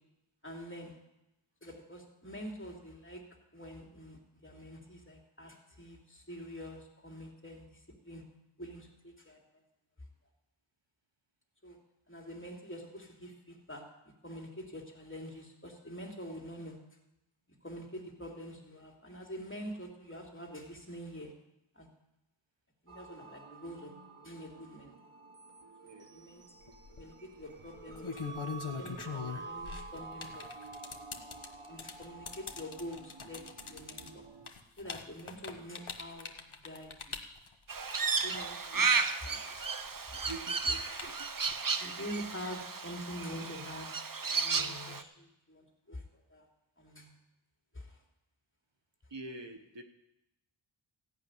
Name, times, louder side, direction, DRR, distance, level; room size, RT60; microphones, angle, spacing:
voice 1, 0.4-1.0 1.6-3.2 3.5-8.2 8.6-9.4 11.6-11.8 12.1-13.8 14.2-16.8 17.6-21.3 21.7-21.9 22.8-23.9 24.2-24.9 26.0-26.4 27.0-28.3 28.8-30.5 31.7-34.2 34.8-37.2 38.1-39.4 40.1-40.3 41.8-43.9 44.3-46.5 46.8-47.1 47.7-48.0, equal, 25° left, 0 dB, 3.0 m, -46 dB
sound 1, 22.9-34.5, right 4 dB, 90° right, 1.1 m, -49 dB
sound 2, 26.7-27.0 27.8-39.1 39.4-41.5, left 5 dB, 80° left, 1.3 m, -42 dB
Crow, 37.7-45.0, right 4 dB, 45° right, 0.8 m, -33 dB
voice 2, 40.1-41.1 49.1-49.8, right 2 dB, 60° right, 5 dB, 1.4 m, -46 dB
15.0 x 5.8 x 9.5 m, 0.89 s
wide cardioid pair, 45°, 49 cm